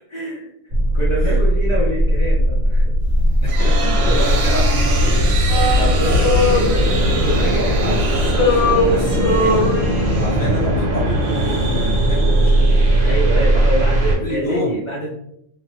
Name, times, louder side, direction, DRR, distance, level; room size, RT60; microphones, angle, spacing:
voice 1, 0.1-0.5 0.9-2.9 3.6-4.2 5.5-6.2 6.7-6.9 10.1-10.4 13.0-15.1, right 1 dB, 40° left, -5 dB, 0.4 m, -26 dB
sound 1, 0.7-14.2, equal, 60° right, 1.0 m, -17 dB
sound 2, 3.1-11.0, right 4 dB, 85° right, 0.9 m, -28 dB
voice 2, 3.4-5.7 6.0-6.7 7.2-9.7 10.1-12.6 14.2-14.8, left 1 dB, 15° left, -8 dB, 1.2 m, -27 dB
Male singing, 5.5-7.9 8.2-10.4, left 2 dB, 65° left, 1.1 m, -21 dB
3.1 x 2.0 x 3.0 m, 0.75 s
omnidirectional pair, 1.2 m